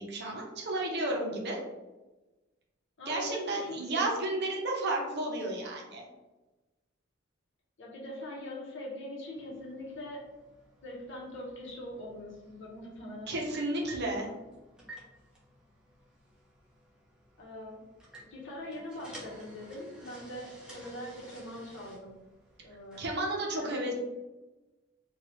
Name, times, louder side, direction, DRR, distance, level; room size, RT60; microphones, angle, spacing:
voice 1, 0.0-1.6 3.1-6.1 13.3-14.3 23.0-23.9, right 2 dB, 55° right, -1 dB, 0.7 m, -32 dB
voice 2, 3.0-4.1 7.8-10.3 10.8-13.4 17.4-17.8 18.2-22.2 22.6-23.2 23.6-23.9, left 1 dB, 65° left, -3 dB, 0.8 m, -42 dB
sound 1, 9.3-23.0, right 1 dB, 5° right, 0.7 m, -54 dB
2.7 x 2.3 x 3.1 m, 1.1 s
head